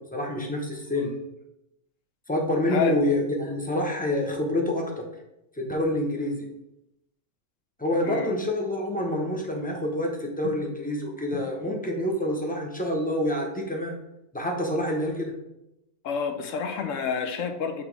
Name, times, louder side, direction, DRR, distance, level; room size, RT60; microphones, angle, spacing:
voice 1, 0.1-1.1 2.3-5.1 5.6-6.5 7.8-13.9 14.3-15.3, left 1 dB, 10° left, 0 dB, 0.8 m, -27 dB
voice 2, 16.0-17.8, left 6 dB, 70° left, 6 dB, 1.1 m, -29 dB
5.9 x 3.6 x 4.6 m, 0.88 s
omnidirectional pair, 1.4 m